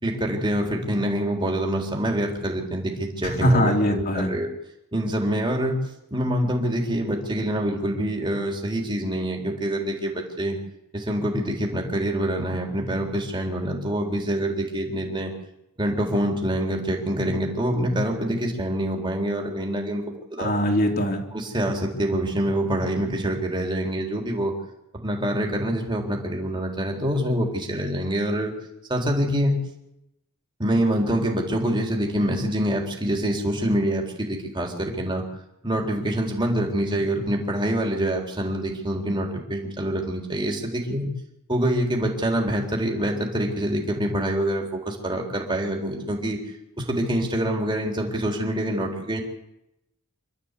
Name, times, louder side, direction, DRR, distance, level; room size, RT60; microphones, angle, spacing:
voice 1, 0.0-4.5 4.9-5.8 6.1-10.6 10.9-15.3 15.8-20.0 20.3-20.5 21.3-24.5 24.9-28.5 28.9-29.6 30.6-35.2 35.6-41.1 41.5-46.4 46.8-49.2, right 1 dB, 20° right, 0 dB, 3.7 m, -25 dB
voice 2, 3.4-4.3 20.4-21.2, equal, 45° left, 1 dB, 3.3 m, -21 dB
26.5 x 13.0 x 8.3 m, 0.87 s
head